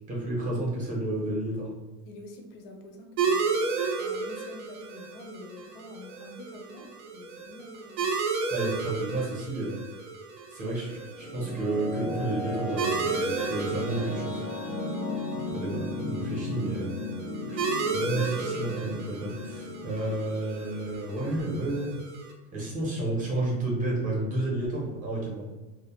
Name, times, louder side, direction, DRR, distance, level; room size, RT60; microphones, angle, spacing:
voice 1, 0.1-1.7 8.5-9.8 10.5-14.5 15.5-16.9 17.4-22.0 22.5-25.4, right 2 dB, 25° right, -4 dB, 0.6 m, -31 dB
voice 2, 2.1-8.0 14.8-15.6, left 2 dB, 80° left, 3 dB, 0.6 m, -47 dB
sound 1, 3.2-22.3, right 4 dB, 80° right, 0.5 m, -33 dB
sound 2, 10.9-21.7, left 2 dB, 30° left, 0.4 m, -36 dB
2.1 x 2.0 x 2.9 m, 1.1 s
cardioid pair, 165°, 31 cm